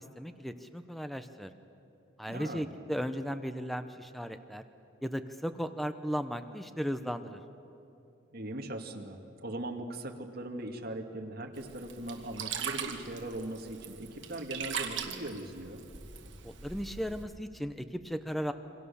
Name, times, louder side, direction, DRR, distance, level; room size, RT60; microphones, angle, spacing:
voice 1, 0.0-1.5 2.2-4.6 5.0-7.4 16.4-18.5, equal, ahead, 9 dB, 0.8 m, -36 dB
voice 2, 2.3-2.7 8.3-15.8, right 1 dB, 50° right, 2 dB, 2.3 m, -40 dB
Sink (filling or washing), 11.6-17.2, right 7 dB, 70° right, 2.2 m, -40 dB
28.5 x 24.5 x 7.1 m, 2.8 s
head